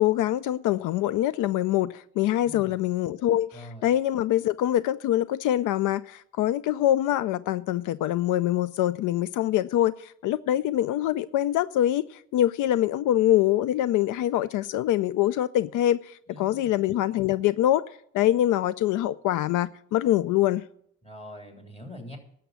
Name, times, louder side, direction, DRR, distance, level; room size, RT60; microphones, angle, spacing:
voice 1, 0.0-20.6, left 13 dB, 80° left, 0.4 m, -24 dB
voice 2, 2.4-2.8 3.5-3.9 16.3-16.9 21.0-22.2, equal, 20° left, 3.5 m, -43 dB
12.0 x 7.0 x 8.3 m
cardioid pair, 90°, 30 cm